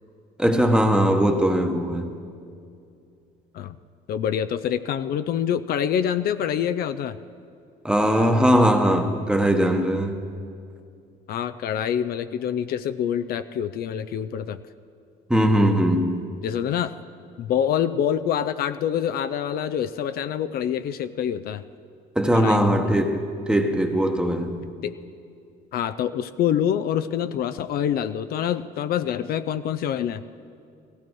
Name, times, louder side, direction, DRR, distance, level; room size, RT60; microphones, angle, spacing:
voice 1, 0.4-2.2 7.8-10.2 15.3-16.3 22.1-24.6, equal, 5° right, 1.1 m, -20 dB
voice 2, 4.1-7.2 11.3-14.6 16.4-16.9 17.4-21.6 22.3-22.9 24.8-24.9 25.7-30.3, left 9 dB, 65° left, 0.5 m, -26 dB
16.5 x 15.5 x 4.7 m
cardioid pair, 110°, 17 cm